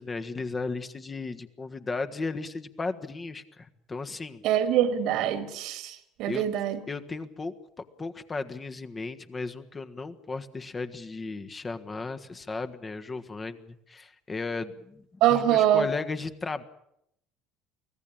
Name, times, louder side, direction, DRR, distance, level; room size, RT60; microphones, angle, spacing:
voice 1, 0.0-4.4 6.3-6.4 6.9-7.5 8.0-15.0 15.3-16.6, left 3 dB, 25° left, 9 dB, 1.6 m, -35 dB
voice 2, 4.4-6.8 15.2-15.9, right 10 dB, 60° right, 11 dB, 2.2 m, -24 dB
24.5 x 16.5 x 8.8 m, 0.77 s
hypercardioid pair, 60°, 0 cm